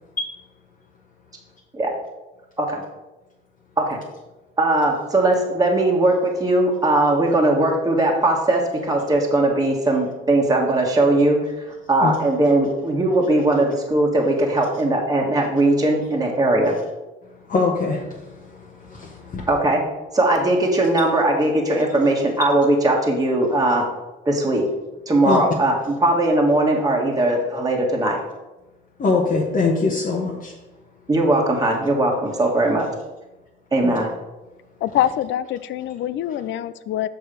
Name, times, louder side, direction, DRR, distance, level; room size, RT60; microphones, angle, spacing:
voice 1, 4.6-11.5 11.9-16.7 19.5-19.8 20.1-23.9 24.2-24.7 25.1-28.2 31.1-32.9 33.7-34.1, right 2 dB, 20° right, -1 dB, 1.4 m, -19 dB
voice 2, 17.3-19.5 25.2-25.4 29.0-30.6 33.8-34.0, left 4 dB, 45° left, -2 dB, 1.1 m, -23 dB
voice 3, 34.8-37.1, left 11 dB, 70° left, 15 dB, 0.4 m, -24 dB
6.5 x 4.8 x 5.1 m, 1.1 s
cardioid pair, 90°, 20 cm